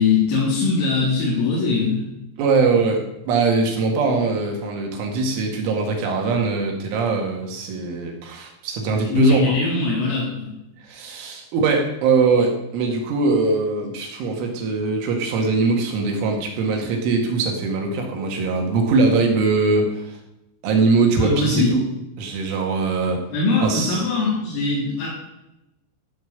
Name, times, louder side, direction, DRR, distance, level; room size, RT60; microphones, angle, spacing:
voice 1, 0.0-2.0 9.1-10.6 21.2-21.7 23.3-25.1, left 4 dB, 85° left, -7 dB, 5.9 m, -21 dB
voice 2, 2.4-9.6 10.8-20.2 20.6-21.8 22.2-23.2 23.6-24.0, right 3 dB, 80° right, 2 dB, 4.5 m, -21 dB
14.5 x 5.7 x 8.1 m, 0.90 s
omnidirectional pair, 5.6 m